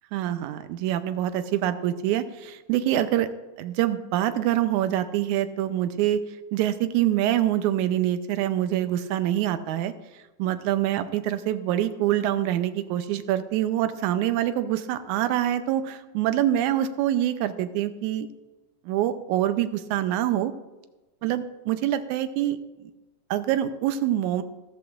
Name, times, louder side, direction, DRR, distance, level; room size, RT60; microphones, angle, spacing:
voice 1, 0.1-3.3 3.6-6.2 6.5-9.9 10.4-18.3 18.9-20.5 21.2-22.6 23.3-24.4, right 12 dB, 80° right, 10 dB, 2.0 m, -25 dB
14.0 x 13.5 x 2.5 m, 1.1 s
omnidirectional pair, 3.5 m